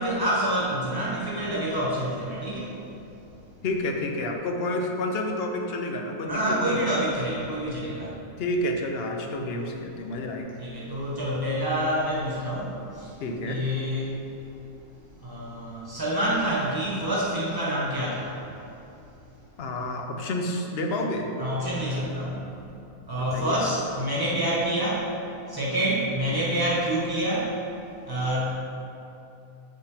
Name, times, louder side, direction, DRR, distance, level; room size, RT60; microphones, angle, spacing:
voice 1, 0.0-2.8 6.3-8.1 9.2-9.7 10.6-13.2 13.4-14.2 15.2-18.4 21.4-22.4 23.1-25.2 25.5-27.7 28.0-28.5, right 1 dB, 15° right, -7 dB, 1.3 m, -27 dB
voice 2, 3.6-7.0 8.4-10.6 13.2-13.6 19.6-21.3 23.3-23.6, left 1 dB, 55° left, 2 dB, 0.8 m, -29 dB
8.1 x 5.3 x 3.4 m, 2.7 s
omnidirectional pair, 1.5 m